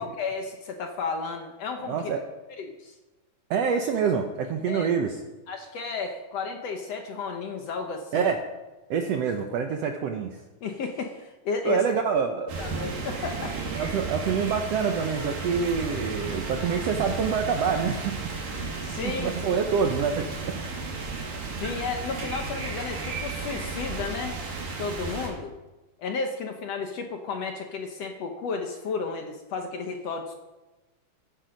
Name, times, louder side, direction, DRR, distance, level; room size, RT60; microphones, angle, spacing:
voice 1, 0.0-2.0 2.6-3.0 4.7-4.9 5.5-8.3 10.6-12.0 12.6-13.6 18.8-19.7 21.6-24.4 24.8-25.5 26.0-30.3, left 4 dB, 60° left, 4 dB, 1.9 m, -33 dB
voice 2, 1.9-2.2 3.5-5.2 8.1-8.4 8.9-10.4 11.6-12.5 13.7-18.3 19.0-20.6 21.3-21.4, right 6 dB, 70° right, 4 dB, 1.6 m, -26 dB
sound 1, 12.5-25.3, right 3 dB, 90° right, 4.2 m, -34 dB
15.0 x 10.5 x 5.2 m, 1.1 s
omnidirectional pair, 3.8 m